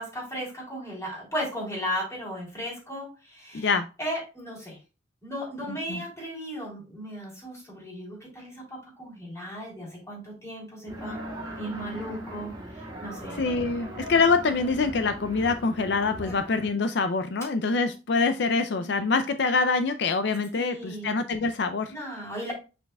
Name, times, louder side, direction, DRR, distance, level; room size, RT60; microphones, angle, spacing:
voice 1, 0.0-3.7 4.0-4.8 5.2-11.2 11.6-13.4 16.2-16.4 18.6-18.9 20.6-21.2 21.9-22.5, equal, 15° left, -3 dB, 3.8 m, -36 dB
voice 2, 3.5-3.9 5.7-6.0 13.3-21.9, left 4 dB, 65° left, 9 dB, 0.5 m, -25 dB
sound 1, 10.9-16.7, equal, 25° right, 2.5 m, -39 dB
7.1 x 6.3 x 2.3 m, 0.31 s
head